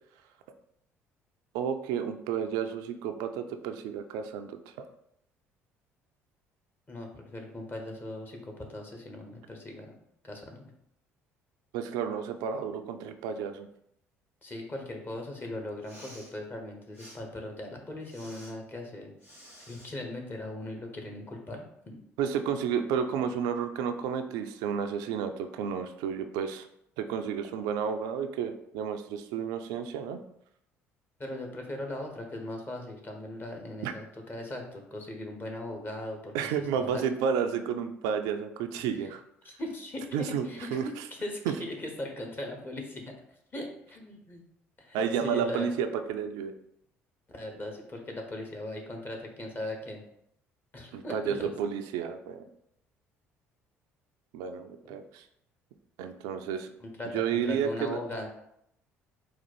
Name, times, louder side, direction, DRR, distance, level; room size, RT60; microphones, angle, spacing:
voice 1, 1.5-4.8 11.7-13.7 22.2-26.7 27.0-30.2 33.8-33.9 36.3-39.2 40.1-41.1 41.5-41.6 44.9-46.5 50.9-52.4 54.3-55.2 56.0-56.7 57.1-58.0, right 7 dB, 65° right, 7 dB, 0.4 m, -31 dB
voice 2, 6.9-9.9 10.2-10.7 14.4-19.1 19.6-22.0 31.2-36.5 36.7-37.0 39.4-43.1 43.5-44.4 44.8-45.7 47.3-50.0 50.7-51.5 56.8-58.3, left 1 dB, 30° left, 2 dB, 1.1 m, -39 dB
Respiratory sounds, 15.8-16.3 16.9-17.2 18.0-18.5 19.2-19.9, equal, 85° left, 1.3 m, -51 dB
4.1 x 2.4 x 4.4 m, 0.76 s
figure-of-eight pair, 50°, 7 cm